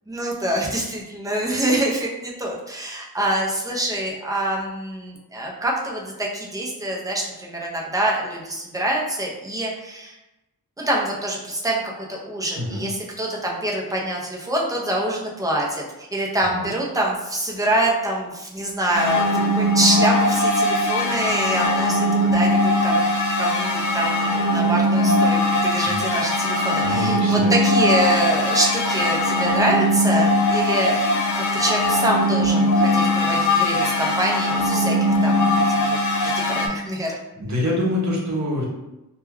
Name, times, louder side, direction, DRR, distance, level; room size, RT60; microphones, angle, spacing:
voice 1, 0.1-10.1 10.8-15.8 16.1-19.3 19.5-23.1 23.4-31.0 31.4-35.4 35.9-36.0 36.2-37.2, right 1 dB, 10° right, -3 dB, 0.5 m, -25 dB
voice 2, 12.6-12.9 16.4-16.7 25.8-26.0 26.9-27.5 37.4-38.6, left 1 dB, 50° right, -4 dB, 0.8 m, -25 dB
sound 1, 18.9-36.7, left 1 dB, 55° left, 0.5 m, -20 dB
2.2 x 2.2 x 3.2 m, 0.96 s
wide cardioid pair, 90°, 37 cm